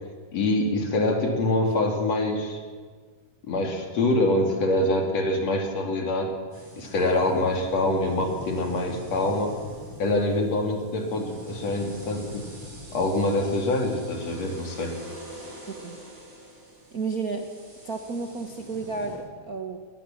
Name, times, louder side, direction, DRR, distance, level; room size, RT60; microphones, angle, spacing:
voice 1, 0.3-2.6 3.4-6.3 6.8-9.6 10.0-12.5 12.9-14.9, left 2 dB, 60° left, 3 dB, 3.9 m, -25 dB
sound 1, 6.5-19.2, equal, 75° right, 8.0 m, -44 dB
voice 2, 16.9-17.5 17.8-19.8, right 4 dB, 45° right, 4 dB, 1.2 m, -32 dB
20.5 x 20.0 x 7.5 m, 1.5 s
omnidirectional pair, 3.3 m